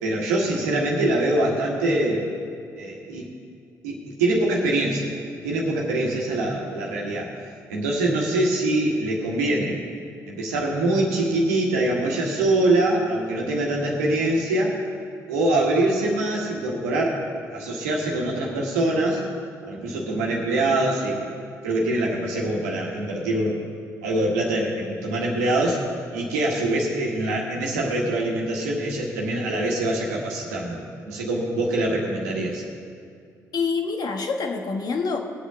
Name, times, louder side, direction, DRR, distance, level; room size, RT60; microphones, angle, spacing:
voice 1, 0.0-2.2 2.7-3.3 3.8-5.1 5.4-7.3 7.7-9.8 10.3-14.8 15.3-17.2 17.5-19.2 19.6-23.6 24.0-25.8 26.1-30.8 31.0-32.6, right 1 dB, 80° right, -2 dB, 1.6 m, -24 dB
voice 2, 33.5-35.2, left 4 dB, 50° left, 3 dB, 1.3 m, -26 dB
19.0 x 8.0 x 3.7 m, 2.3 s
hypercardioid pair, 45°, 9 cm